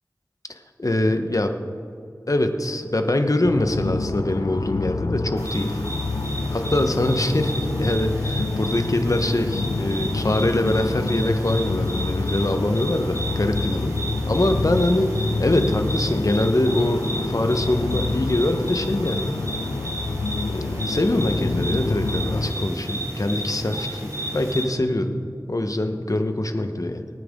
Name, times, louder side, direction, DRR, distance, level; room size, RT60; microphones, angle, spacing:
voice 1, 0.5-1.5 2.3-5.8 6.5-14.0 14.3-15.1 15.4-19.4 20.5-27.1, left 1 dB, 55° left, 6 dB, 1.1 m, -23 dB
sound 1, 3.4-22.5, left 3 dB, 80° left, 0.5 m, -28 dB
sound 2, 5.4-24.6, right 1 dB, 55° right, 3.6 m, -32 dB
25.0 x 9.2 x 3.7 m, 2.4 s
wide cardioid pair, 40°, 7 cm